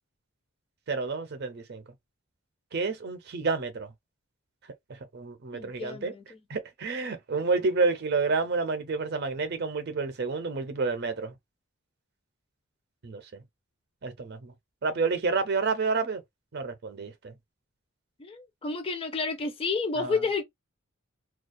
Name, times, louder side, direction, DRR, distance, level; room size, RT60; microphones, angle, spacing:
voice 1, 0.9-1.8 2.7-3.9 5.1-6.1 6.5-11.3 13.0-13.4 14.0-14.5 14.8-16.2 16.5-17.3 20.0-20.2, right 4 dB, 50° right, 0.5 m, -29 dB
voice 2, 5.5-6.4 18.2-20.4, left 4 dB, 25° left, 0.5 m, -31 dB
2.3 x 2.1 x 2.5 m
head